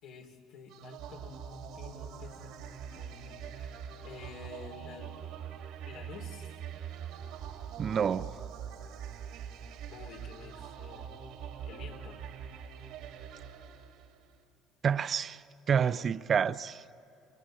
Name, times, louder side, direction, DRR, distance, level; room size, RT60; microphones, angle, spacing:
voice 1, 0.0-5.1 5.9-6.6 9.9-11.1 11.7-12.2, left 5 dB, 75° left, 3.1 m, -50 dB
sound 1, 0.7-14.4, right 8 dB, 75° right, 2.2 m, -43 dB
voice 2, 7.8-8.3 14.8-15.4 15.7-16.8, right 7 dB, 45° right, 0.5 m, -28 dB
29.0 x 21.5 x 7.6 m
supercardioid pair, 85°, 0 cm